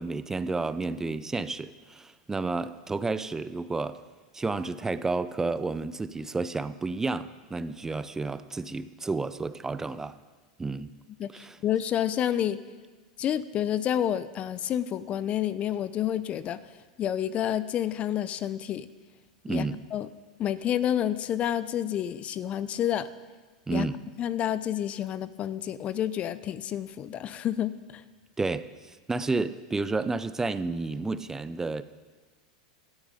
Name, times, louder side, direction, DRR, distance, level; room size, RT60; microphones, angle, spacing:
voice 1, 0.0-4.0 4.3-10.2 10.6-10.9 11.3-11.6 19.4-19.8 23.7-24.0 28.4-31.8, right 3 dB, 15° right, 14 dB, 0.6 m, -31 dB
voice 2, 11.6-12.6 13.2-16.6 17.0-18.9 19.5-19.6 19.9-20.1 20.4-23.1 23.7-23.9 24.2-28.0, left 10 dB, 35° left, 16 dB, 0.8 m, -29 dB
17.5 x 13.0 x 5.2 m, 1.3 s
hypercardioid pair, 95°, 4 cm